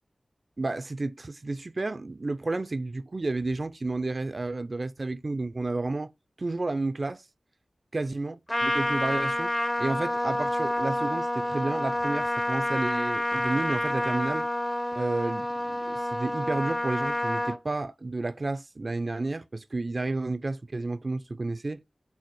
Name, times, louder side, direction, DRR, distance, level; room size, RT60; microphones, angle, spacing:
voice 1, 0.6-6.1 6.4-7.2 7.9-8.3 8.6-9.5 9.8-14.5 14.9-21.8, right 2 dB, 50° right, 0.3 m, -31 dB
Trumpet, 8.5-17.6, left 1 dB, 25° left, 0.6 m, -28 dB
4.0 x 2.0 x 4.4 m
wide cardioid pair, 60°, 0 cm